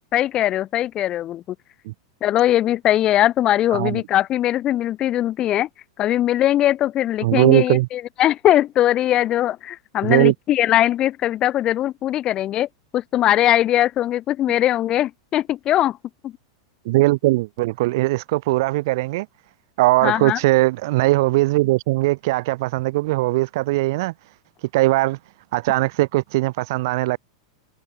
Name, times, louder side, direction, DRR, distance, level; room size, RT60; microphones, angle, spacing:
voice 1, 0.1-1.4 2.2-5.7 6.0-12.7 12.9-16.0 16.2-16.3 20.0-20.4, left 13 dB, 35° left, 0.3 m, -20 dB
voice 2, 7.2-7.9 10.0-10.3 16.9-19.3 19.8-24.1 24.7-25.2 25.5-27.2, right 20 dB, 60° right, 0.4 m, -19 dB
hypercardioid pair, 110°, 2 cm